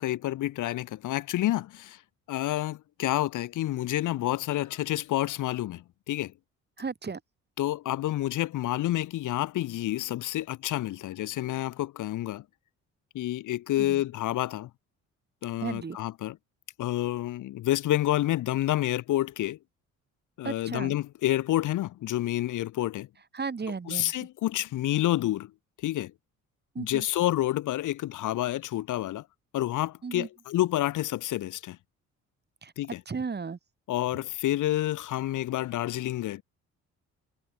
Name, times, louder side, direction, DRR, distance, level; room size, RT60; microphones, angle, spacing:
voice 1, 0.0-2.0 2.3-6.3 7.6-12.4 13.1-14.7 15.4-16.4 16.8-19.6 20.4-23.1 23.9-25.5 25.8-26.1 26.8-29.2 29.5-31.8 32.8-33.0 33.9-36.4, left 14 dB, 85° left, 3.4 m, -29 dB
voice 2, 6.8-7.2 13.8-14.0 15.6-16.0 20.4-21.0 23.3-24.1 26.8-27.0 30.0-30.3 32.6-32.7 33.1-33.6, right 5 dB, 35° right, 5.3 m, -34 dB
cardioid pair, 90°, 30 cm